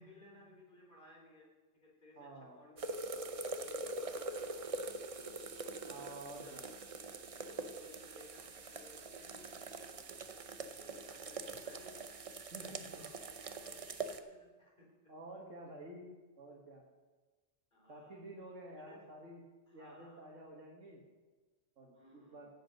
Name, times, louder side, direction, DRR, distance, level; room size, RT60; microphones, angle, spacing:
voice 1, 0.0-1.5 1.8-3.2 3.5-5.3 6.0-9.6 9.9-10.2 10.8-12.1 12.4-14.9 17.7-18.2 18.8-19.0 19.7-20.3 21.9-22.4, left 1 dB, 40° left, -3 dB, 3.7 m, -60 dB
voice 2, 2.2-2.6 5.8-6.7 12.5-13.1 15.1-16.1 16.4-16.8 17.9-19.4 19.7-21.0 21.8-22.5, right 2 dB, 80° right, -3 dB, 1.8 m, -50 dB
sound 1, 2.8-14.2, right 3 dB, 35° right, 0.6 m, -44 dB
16.5 x 7.7 x 5.2 m, 1.3 s
omnidirectional pair, 1.3 m